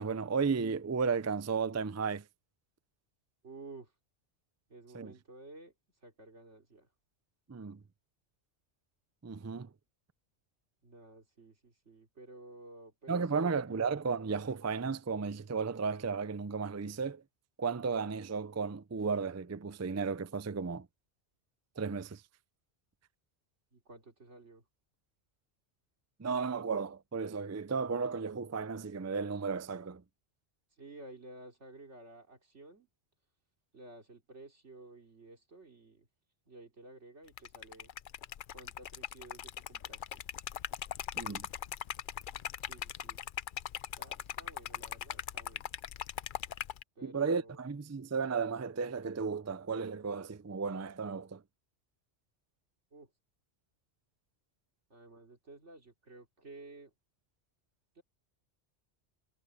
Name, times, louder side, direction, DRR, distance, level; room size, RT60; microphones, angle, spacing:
voice 1, 0.0-2.2 4.9-5.1 7.5-7.8 9.2-9.7 13.1-17.2 17.6-20.9 21.8-22.2 26.2-30.0 41.2-41.5 47.0-51.4, right 5 dB, 25° right, 0.3 m, -34 dB
voice 2, 3.4-3.9 4.7-5.7 6.0-6.9 10.8-13.5 23.7-24.7 30.8-32.9 33.7-36.1 36.5-37.9 38.5-40.2 42.6-43.2 43.9-45.7 47.0-47.7 52.9-53.1 54.9-56.9 58.0-58.1, right 2 dB, 85° right, 3.5 m, -53 dB
Liquid, 37.3-46.8, left 10 dB, 55° left, 0.6 m, -40 dB
omnidirectional pair, 1.2 m